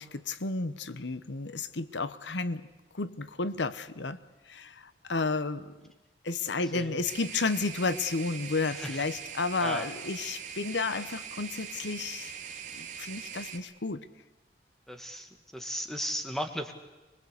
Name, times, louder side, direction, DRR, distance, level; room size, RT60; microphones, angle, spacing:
voice 1, 0.0-2.7 2.9-4.2 4.5-5.7 6.2-12.3 12.7-14.0, left 3 dB, 80° left, 14 dB, 1.0 m, -32 dB
sound 1, 7.0-13.6, right 7 dB, 45° right, 2.4 m, -42 dB
voice 2, 8.7-9.0 9.6-9.9 14.9-16.7, equal, ahead, 6 dB, 1.8 m, -36 dB
24.5 x 22.0 x 8.3 m, 1.1 s
head